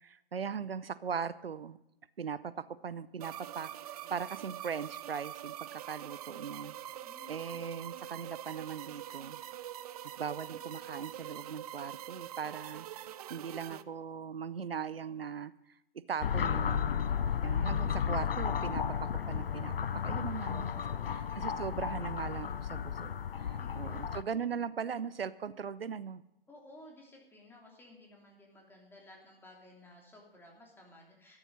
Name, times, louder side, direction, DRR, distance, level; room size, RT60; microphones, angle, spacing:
voice 1, 0.0-1.8 2.2-6.7 7.3-9.4 10.2-15.8 16.1-16.9 17.4-19.8 20.0-20.7 21.1-23.1 23.4-26.2, right 6 dB, 80° right, 17 dB, 0.7 m, -39 dB
sound 1, 3.2-13.8, right 12 dB, 40° right, 0.6 m, -44 dB
voice 2, 7.0-7.6 20.4-21.3 23.4-24.1 26.5-31.4, left 1 dB, 5° left, -1 dB, 3.0 m, -56 dB
sound 2, 16.2-24.2, left 8 dB, 75° left, 0.7 m, -33 dB
13.5 x 10.0 x 5.5 m, 0.86 s
figure-of-eight pair, 120°, 29 cm